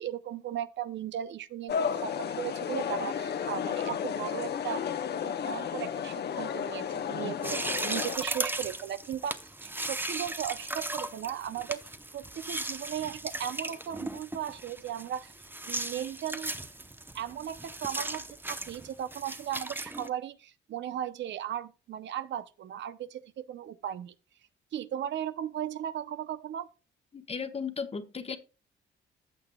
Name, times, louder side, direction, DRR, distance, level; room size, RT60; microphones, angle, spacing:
voice 1, 0.0-1.7 2.0-4.9 5.2-9.4 9.6-11.8 12.1-15.3 15.7-16.5 17.1-24.1 24.7-26.7, right 10 dB, 65° right, 0.7 m, -36 dB
sound 1, 1.7-8.2, left 7 dB, 55° left, 1.0 m, -33 dB
sound 2, 7.4-20.1, right 2 dB, 10° right, 0.8 m, -37 dB
voice 2, 27.1-28.4, left 5 dB, 30° left, 1.1 m, -35 dB
14.5 x 6.8 x 2.3 m
cardioid pair, 90°, 20 cm